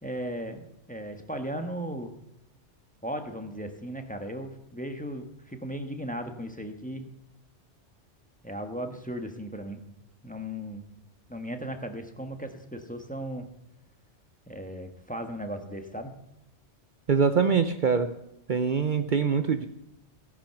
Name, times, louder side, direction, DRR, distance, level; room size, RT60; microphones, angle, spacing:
voice 1, 0.0-2.2 3.0-7.1 8.4-9.8 10.2-10.8 11.3-13.5 14.5-16.1, equal, 5° left, 6 dB, 1.3 m, -36 dB
voice 2, 17.1-18.1 18.5-19.7, right 6 dB, 50° right, 9 dB, 0.8 m, -24 dB
16.5 x 10.5 x 5.9 m, 0.83 s
omnidirectional pair, 1.2 m